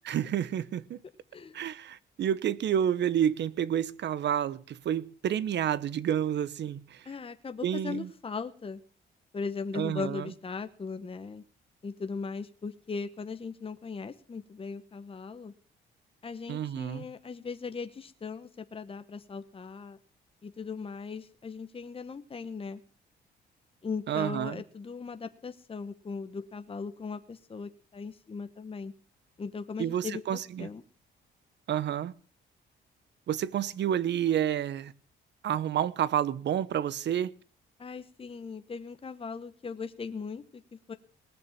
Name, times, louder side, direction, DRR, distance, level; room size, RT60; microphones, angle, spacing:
voice 1, 0.1-1.0 1.5-7.0 7.6-8.1 9.7-10.2 16.5-17.1 24.1-24.6 29.8-30.7 31.7-32.1 33.3-34.9 35.4-37.3, right 10 dB, 60° right, 0.9 m, -29 dB
voice 2, 7.0-8.8 9.3-11.4 11.8-15.5 16.2-20.0 20.4-22.8 23.8-28.9 29.4-30.8 37.8-40.9, left 5 dB, 30° left, 1.0 m, -38 dB
19.5 x 7.0 x 7.4 m
cardioid pair, 90°, 20 cm